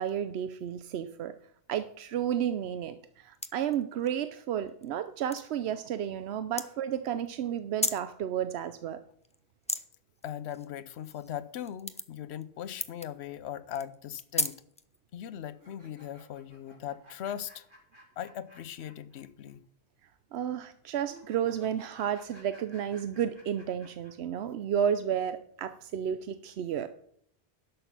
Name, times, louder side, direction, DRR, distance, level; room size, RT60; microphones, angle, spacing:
voice 1, 0.0-1.3 1.7-9.0 20.3-26.9, right 9 dB, 90° right, 0.9 m, -32 dB
sound 1, 3.3-4.1 4.7-4.9 5.2-5.4 6.5-6.6 7.6-8.1 9.2-9.8 10.2-11.3 11.6-12.4 12.8-13.1 13.7-15.0, left 1 dB, 10° left, 0.3 m, -33 dB
voice 2, 10.2-14.6 15.1-17.7 18.2-19.6, left 10 dB, 90° left, 0.9 m, -39 dB
sound 2, 15.5-19.2 19.5-19.6 21.0-24.1, equal, 55° right, 3.4 m, -55 dB
11.0 x 6.7 x 5.8 m
omnidirectional pair, 1.1 m